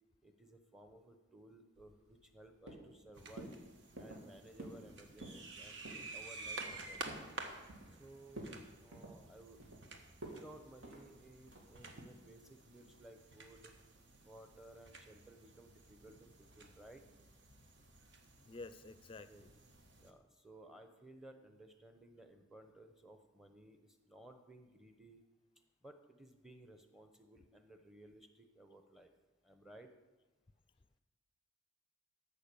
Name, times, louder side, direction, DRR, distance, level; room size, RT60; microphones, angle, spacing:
voice 1, 0.2-3.5 4.0-7.0 8.0-9.6 10.2-13.7 14.2-17.0 19.3-19.4 20.0-25.2 25.8-29.1 29.4-29.9, right 1 dB, ahead, 6 dB, 0.9 m, -58 dB
sound 1, 1.8-2.4 2.7-3.0 3.4-3.6 4.0-4.3 4.6-4.9 5.1-5.4 5.8-6.1 6.5-7.3 7.7-8.0 8.3-8.6 8.9-9.8 10.2-10.4 10.8-11.0 11.5-11.8, right 1 dB, 85° right, 2.5 m, -50 dB
sound 2, 3.1-20.1, right 3 dB, 60° right, 1.2 m, -52 dB
voice 2, 18.4-19.5, left 3 dB, 25° left, 13 dB, 0.4 m, -51 dB
13.5 x 5.5 x 6.9 m, 1.2 s
head